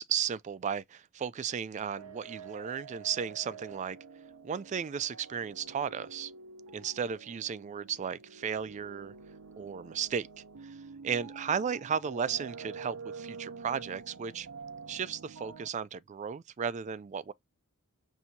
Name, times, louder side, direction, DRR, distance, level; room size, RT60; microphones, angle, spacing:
voice 1, 0.0-4.0 4.4-6.3 6.7-9.1 9.6-10.7 11.0-14.5 14.9-17.3, right 7 dB, 35° right, 0.3 m, -35 dB
sound 1, 2.0-15.7, right 5 dB, 85° right, 0.7 m, -48 dB
5.7 x 2.7 x 2.7 m
head